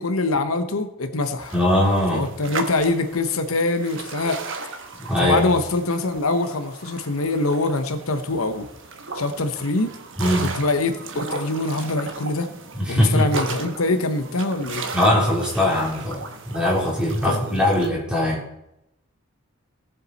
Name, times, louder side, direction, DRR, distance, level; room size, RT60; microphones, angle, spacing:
voice 1, 0.0-1.5 2.1-4.4 5.2-8.7 9.1-9.9 10.4-12.5 12.9-14.9 17.3-17.6, left 2 dB, 75° left, 8 dB, 0.9 m, -24 dB
sound 1, 1.4-17.9, right 4 dB, 60° right, 1.2 m, -36 dB
voice 2, 1.5-2.3 5.0-5.5 10.2-10.5 12.7-13.4 14.9-18.5, left 1 dB, 5° right, -5 dB, 3.5 m, -21 dB
17.5 x 7.5 x 4.1 m, 0.85 s
head